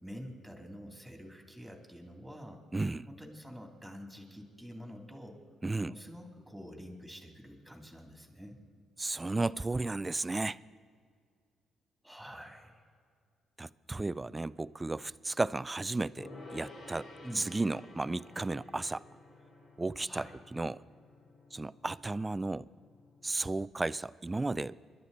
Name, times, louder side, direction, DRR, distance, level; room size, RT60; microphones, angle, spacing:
voice 1, 0.0-2.6 3.1-5.4 5.7-8.6 12.0-12.8 17.2-17.4 20.1-20.3, equal, ahead, 2.9 m, -47 dB
voice 2, 2.7-3.1 5.6-5.9 9.0-10.6 13.6-17.1 17.4-19.0 19.8-20.2 20.5-20.8 21.5-22.7 23.2-24.8, right 2 dB, 20° right, 0.3 m, -34 dB
Gong, 16.2-23.6, left 2 dB, 65° left, 3.8 m, -53 dB
27.5 x 11.5 x 4.1 m
cardioid pair, 90°, 0 cm